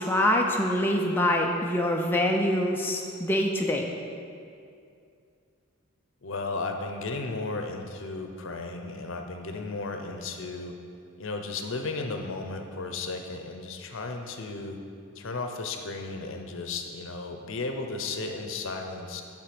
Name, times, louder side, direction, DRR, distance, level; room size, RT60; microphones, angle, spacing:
voice 1, 0.0-3.9, left 1 dB, 10° left, 0 dB, 0.4 m, -25 dB
voice 2, 6.2-10.8 11.2-14.8 15.2-19.2, left 3 dB, 60° left, 4 dB, 0.7 m, -34 dB
9.8 x 3.7 x 5.9 m, 2.4 s
head